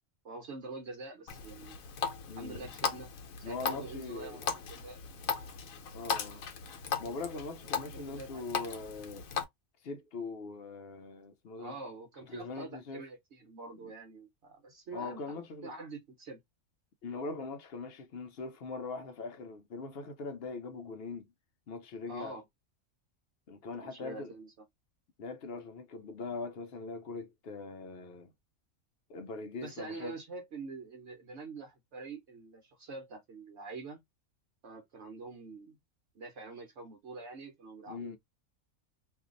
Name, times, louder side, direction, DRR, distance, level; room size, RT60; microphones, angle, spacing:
voice 1, 0.2-1.8 2.4-3.1 3.4-5.0 7.9-8.8 11.6-16.4 22.1-22.5 23.8-24.5 29.6-34.0 34.6-35.8 36.1-38.2, right 3 dB, 60° right, 1.1 m, -45 dB
Water tap faucet, 1.3-9.4, left 6 dB, 80° left, 1.1 m, -38 dB
voice 2, 2.3-2.7 3.4-4.5 5.9-6.4 7.0-9.3 9.8-11.8 12.3-13.0 13.8-13.9 14.9-15.7 17.0-21.3 21.7-22.3 23.5-24.3 25.2-28.3 29.1-30.1 37.9-38.2, left 4 dB, 55° left, 0.8 m, -41 dB
2.7 x 2.5 x 3.8 m
omnidirectional pair, 1.4 m